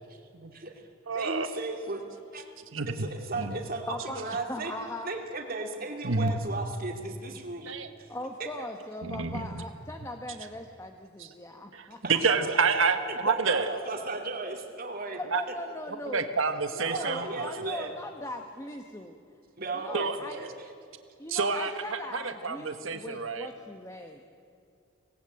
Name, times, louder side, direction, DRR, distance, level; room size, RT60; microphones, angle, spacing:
voice 1, 0.5-0.8 1.1-2.4 2.9-4.7 5.0-8.1 8.4-8.5 11.2-11.3 12.0-12.4 13.1-15.2 16.9-17.9 19.6-20.5, right 3 dB, 45° right, 3 dB, 2.7 m, -35 dB
voice 2, 1.1-1.5 2.7-3.1 3.3-3.6 6.0-6.4 7.7-7.9 9.0-9.6 11.2-11.3 11.7-13.7 15.2-15.4 16.1-17.6 19.9-20.2 21.3-23.5, right 4 dB, 75° right, 8 dB, 1.4 m, -29 dB
voice 3, 3.9-5.1 8.1-12.0 15.1-16.2 16.7-19.2 19.7-20.5 21.2-24.2, left 1 dB, 15° left, 4 dB, 1.1 m, -40 dB
25.0 x 19.0 x 8.8 m, 2.4 s
head